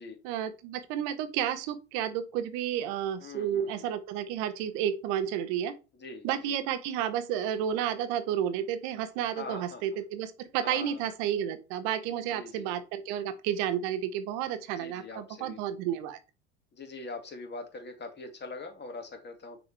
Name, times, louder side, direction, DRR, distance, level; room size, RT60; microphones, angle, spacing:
voice 1, 0.2-5.7 6.2-16.2, right 10 dB, 65° right, 1.0 m, -31 dB
voice 2, 3.2-3.9 5.9-6.6 9.4-10.0 10.6-11.0 12.3-12.7 14.8-15.6 16.7-19.6, left 3 dB, 30° left, 2.1 m, -43 dB
6.2 x 4.9 x 3.3 m
hypercardioid pair, 75°, 35 cm